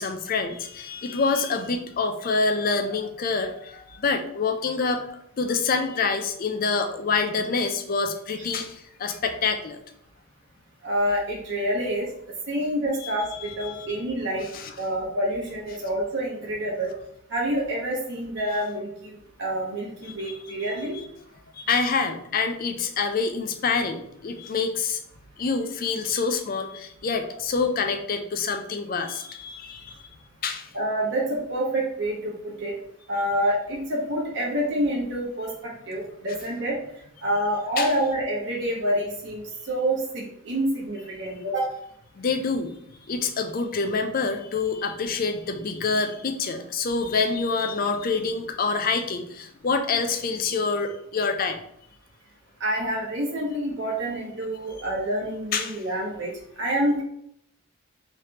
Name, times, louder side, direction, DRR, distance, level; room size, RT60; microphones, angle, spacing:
voice 1, 0.0-5.1 5.4-9.8 13.0-14.0 14.5-14.7 20.0-21.0 21.5-25.0 25.4-29.9 30.4-30.7 37.8-37.9 42.2-42.8 43.1-51.6 55.5-55.9, left 4 dB, 40° left, 6 dB, 0.4 m, -27 dB
voice 2, 10.8-12.1 12.5-14.5 14.8-16.9 17.3-21.0 30.7-32.7 33.1-36.8 37.2-41.7 52.6-56.3 56.6-57.0, right 1 dB, 60° right, -3 dB, 0.9 m, -27 dB
3.2 x 3.2 x 2.9 m, 0.72 s
head